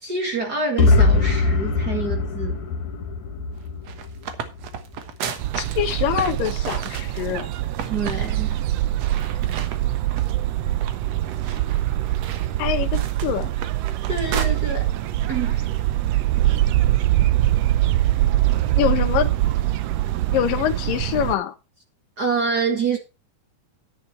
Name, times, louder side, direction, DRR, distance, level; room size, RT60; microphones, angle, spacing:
voice 1, 0.0-2.6 7.9-8.6 14.1-14.9 15.3-15.7 22.2-23.0, right 4 dB, 35° right, 1.8 m, -26 dB
sound 1, 0.8-4.7, left 3 dB, 60° left, 3.2 m, -21 dB
sound 2, 3.7-7.4 7.8-8.2 8.5-8.6 9.0-10.4 10.8-14.5, right 7 dB, 60° right, 2.1 m, -34 dB
sound 3, 5.4-21.4, right 14 dB, 85° right, 1.4 m, -23 dB
voice 2, 5.6-7.5 12.6-13.5 18.8-19.3 20.3-21.5, left 10 dB, 80° left, 2.8 m, -24 dB
10.0 x 9.6 x 4.3 m
omnidirectional pair, 4.0 m